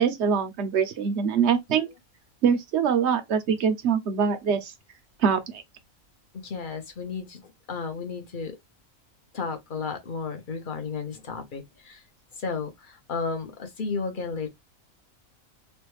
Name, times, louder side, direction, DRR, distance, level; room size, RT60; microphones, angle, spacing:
voice 1, 0.0-1.9 2.4-4.7 5.2-5.6, right 7 dB, 60° right, 0.9 m, -24 dB
voice 2, 6.3-7.4 7.7-8.6 9.3-12.0 12.4-14.5, left 4 dB, 45° left, 0.8 m, -33 dB
3.1 x 2.3 x 3.1 m
omnidirectional pair, 1.5 m